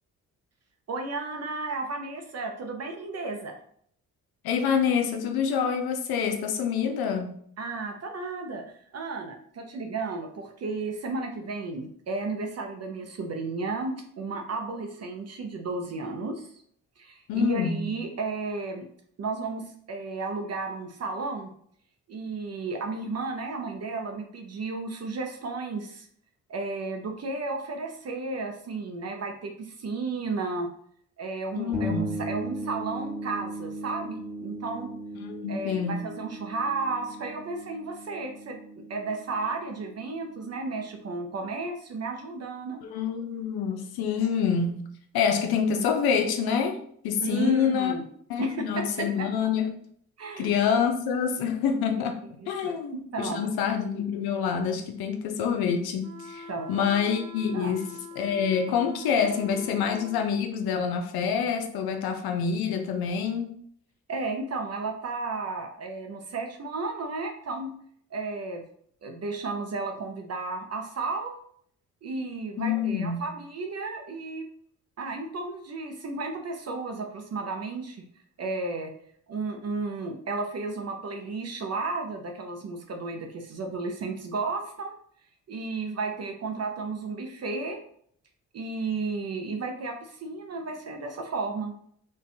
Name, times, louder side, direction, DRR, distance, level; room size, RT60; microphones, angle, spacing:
voice 1, 0.9-3.5 7.6-8.6 8.9-16.5 17.0-18.9 19.2-21.5 22.1-26.1 26.5-30.7 31.2-34.9 35.5-42.8 47.2-48.1 48.4-49.3 50.2-50.5 52.4-52.7 53.1-53.5 56.5-56.9 57.5-57.7 64.1-67.7 68.1-68.6 69.0-71.4 72.0-74.5 75.0-78.1 78.4-78.9 79.3-85.0 85.5-87.8 88.5-91.7, right 3 dB, 45° right, 4 dB, 0.5 m, -33 dB
voice 2, 4.4-7.3 17.3-17.9 31.5-32.1 35.2-36.1 42.8-44.9 45.1-47.9 48.3-49.7 50.4-57.9 58.2-63.6 72.6-73.2, left 7 dB, 80° left, 5 dB, 0.5 m, -27 dB
sound 1, 31.7-41.3, right 1 dB, ahead, 1.2 m, -38 dB
sound 2, 56.0-60.2, left 3 dB, 70° right, 0.7 m, -44 dB
2.4 x 2.3 x 2.6 m, 0.63 s
supercardioid pair, 55°, 37 cm